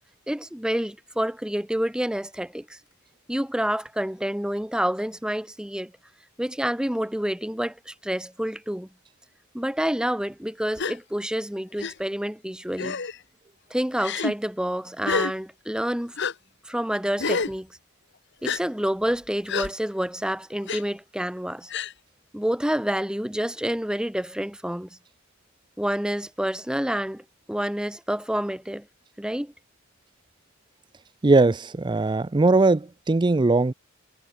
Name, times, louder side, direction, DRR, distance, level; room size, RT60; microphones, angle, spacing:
voice 1, 0.3-2.8 3.3-5.9 6.4-8.9 9.5-13.0 13.7-16.1 16.6-17.7 18.4-21.7 22.3-24.9 25.8-28.9 29.2-29.5, equal, 5° right, 0.9 m, -28 dB
Gasp, 10.8-11.0 11.8-11.9 12.8-13.2 14.0-14.3 15.0-15.3 16.2-16.3 17.2-17.5 18.4-18.6 19.5-19.7 20.7-20.8 21.7-21.9, left 5 dB, 55° left, 1.5 m, -28 dB
voice 2, 31.2-33.7, right 3 dB, 20° right, 0.5 m, -20 dB
head